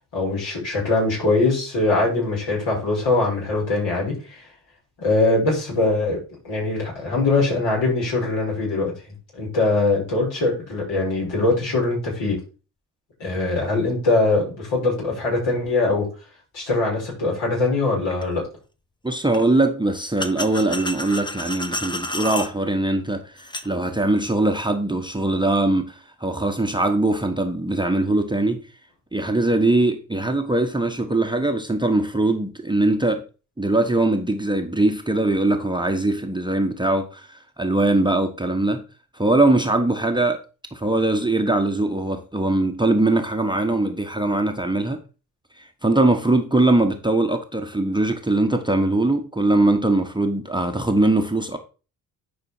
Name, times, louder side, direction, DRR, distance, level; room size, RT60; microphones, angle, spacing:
voice 1, 0.1-4.1 5.0-6.2 6.4-8.9 9.3-12.4 13.2-16.1 16.5-18.4, left 2 dB, 60° left, 6.1 m, -22 dB
sound 1, 18.1-18.2 19.3-19.4 20.2-22.5 23.4-23.7, left 1 dB, 10° left, 1.1 m, -30 dB
voice 2, 19.0-28.6 29.1-33.2 33.6-38.8 39.1-40.4 40.7-45.0 45.6-51.6, right 2 dB, 10° right, 1.3 m, -21 dB
11.0 x 5.1 x 4.5 m
figure-of-eight pair, 40°, 49 cm